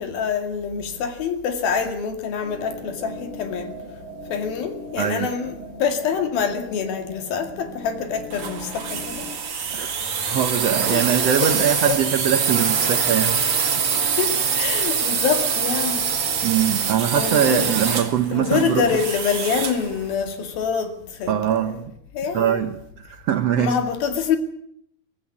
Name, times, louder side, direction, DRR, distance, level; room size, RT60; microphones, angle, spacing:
voice 1, 0.0-3.7 4.3-9.3 10.2-10.4 10.9-11.0 11.4-11.5 11.9-12.0 13.5-16.0 17.1-18.0 18.3-21.8 22.1-22.6 23.6-24.4, left 6 dB, 75° left, 4.0 m, -26 dB
sound 1, 2.4-9.3, equal, 30° left, 7.9 m, -39 dB
voice 2, 5.0-5.3 9.7-9.9 10.3-13.6 16.4-18.9 21.3-21.8 22.3-23.8, right 9 dB, 75° right, 1.4 m, -22 dB
sound 2, 8.3-19.9, right 6 dB, 40° right, 2.6 m, -24 dB
24.0 x 17.0 x 8.5 m
omnidirectional pair, 4.4 m